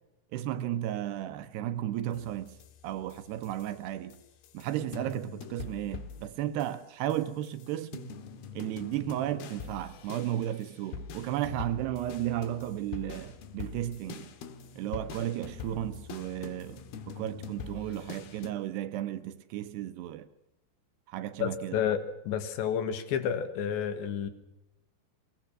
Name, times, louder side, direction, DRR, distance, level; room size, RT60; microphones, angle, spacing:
voice 1, 0.3-2.5 2.8-4.2 4.5-8.1 8.5-14.3 14.8-20.3 21.1-21.8, right 12 dB, 75° right, 2.9 m, -34 dB
sound 1, 2.1-3.9 4.1-6.8 7.1-18.5, left 6 dB, 65° left, 3.1 m, -44 dB
voice 2, 21.4-24.3, left 8 dB, 85° left, 3.9 m, -30 dB
22.0 x 20.5 x 6.1 m
omnidirectional pair, 5.1 m